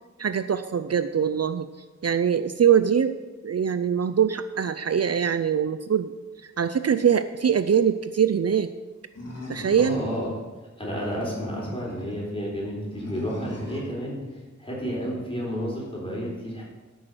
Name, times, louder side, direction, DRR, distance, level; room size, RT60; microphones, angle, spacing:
voice 1, 0.2-1.7 2.0-3.1 3.4-6.1 6.4-8.7 9.5-10.0, right 8 dB, 55° right, 11 dB, 0.5 m, -23 dB
Animal, 9.2-10.3 11.0-12.1 12.9-13.9, left 1 dB, 60° left, 3.1 m, -39 dB
voice 2, 9.8-10.3 10.8-14.2 14.6-16.6, equal, 20° left, -4 dB, 4.2 m, -31 dB
13.5 x 6.3 x 6.3 m, 1.2 s
wide cardioid pair, 90°, 30 cm